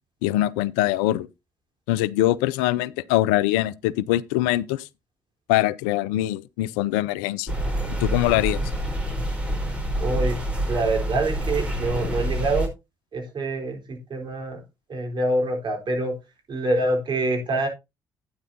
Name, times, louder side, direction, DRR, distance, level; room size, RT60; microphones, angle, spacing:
voice 1, 0.2-1.3 1.9-4.9 5.5-7.5 8.0-8.6, left 15 dB, 75° left, 0.4 m, -23 dB
sound 1, 7.5-12.7, equal, 10° right, 4.7 m, -27 dB
voice 2, 10.0-10.4 10.7-12.7 13.1-14.6 14.9-16.1 16.5-17.7, right 2 dB, 45° right, 3.9 m, -25 dB
12.0 x 9.5 x 2.7 m
hypercardioid pair, 50°, 11 cm